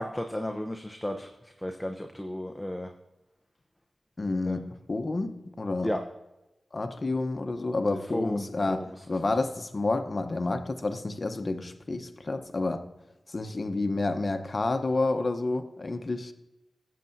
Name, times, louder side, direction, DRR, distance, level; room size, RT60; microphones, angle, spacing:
voice 1, 0.0-2.9 4.5-4.6 5.8-6.0 7.9-8.9, left 1 dB, 10° left, 4 dB, 0.7 m, -34 dB
voice 2, 4.2-5.3 5.6-5.9 6.7-12.8 13.3-16.3, left 2 dB, 45° left, 7 dB, 0.9 m, -29 dB
16.0 x 7.5 x 2.7 m, 0.98 s
cardioid pair, 65°, 0 cm